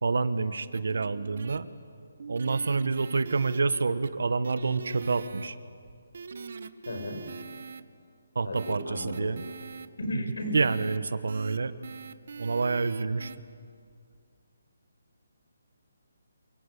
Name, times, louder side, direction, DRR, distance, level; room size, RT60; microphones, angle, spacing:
voice 1, 0.0-1.7 2.3-5.6 8.3-9.4 10.5-11.7 12.4-13.3, right 4 dB, 70° right, 14 dB, 1.3 m, -28 dB
sound 1, 0.7-1.6 2.2-4.1 4.4-5.5 6.1-7.8 8.6-9.9 10.5-11.0 11.3-11.6 11.8-13.4, right 5 dB, 45° right, 1.0 m, -42 dB
voice 2, 6.9-7.3 8.4-9.3 10.0-10.6, left 1 dB, 90° left, 4 dB, 7.1 m, -34 dB
28.0 x 24.5 x 8.4 m, 2.2 s
hypercardioid pair, 180°, 0 cm